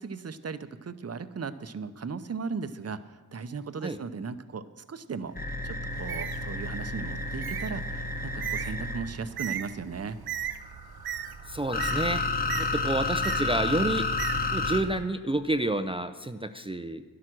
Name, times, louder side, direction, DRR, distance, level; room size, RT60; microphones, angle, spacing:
voice 1, 0.0-3.0 3.3-5.4 5.6-10.2, right 5 dB, 40° right, 11 dB, 0.7 m, -37 dB
sound 1, 5.4-9.1 10.6-14.8, left 3 dB, 25° left, 1.3 m, -30 dB
Bird, 5.9-15.0, right 9 dB, 80° right, 0.6 m, -39 dB
voice 2, 11.5-12.2 12.6-14.1 14.5-17.0, right 1 dB, 15° right, 8 dB, 0.5 m, -29 dB
12.5 x 11.0 x 6.1 m, 1.4 s
wide cardioid pair, 85°, 37 cm